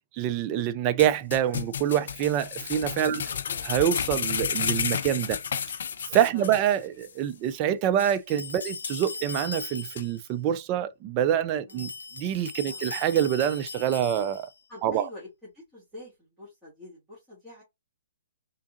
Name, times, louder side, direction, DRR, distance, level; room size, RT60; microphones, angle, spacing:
voice 1, 0.1-3.3 3.6-5.4 6.1-14.5 14.8-15.1, right 10 dB, 30° right, 0.4 m, -26 dB
sound 1, 1.0-6.7 7.0-7.1 7.5-7.6 8.0-8.1 8.6-9.4 10.0-10.1, left 7 dB, 60° left, 0.4 m, -32 dB
voice 2, 3.1-3.7 6.3-6.5 8.6-8.7 11.7-11.9 12.7-13.0 14.7-17.6, left 2 dB, 5° right, 2.4 m, -47 dB
sound 2, 8.3-10.2 11.7-14.6, left 4 dB, 85° left, 0.8 m, -39 dB
3.8 x 3.5 x 2.5 m
figure-of-eight pair, 125°, 0 cm